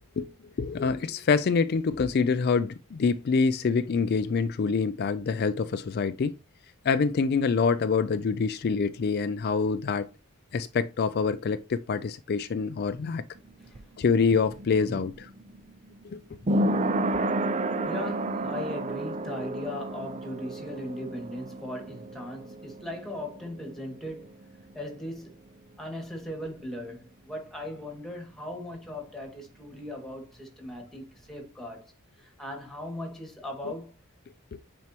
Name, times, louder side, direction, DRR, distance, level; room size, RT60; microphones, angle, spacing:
voice 1, 0.6-6.4 6.8-10.1 10.5-13.2 14.0-15.3 16.0-16.2, left 5 dB, 50° left, 0.4 m, -26 dB
sound 1, 13.4-24.9 25.2-25.3, right 1 dB, 35° right, 0.5 m, -31 dB
voice 2, 17.8-24.3 24.7-25.4 25.8-31.9 32.2-34.0, left 1 dB, ahead, 2.0 m, -38 dB
9.3 x 4.4 x 2.9 m
head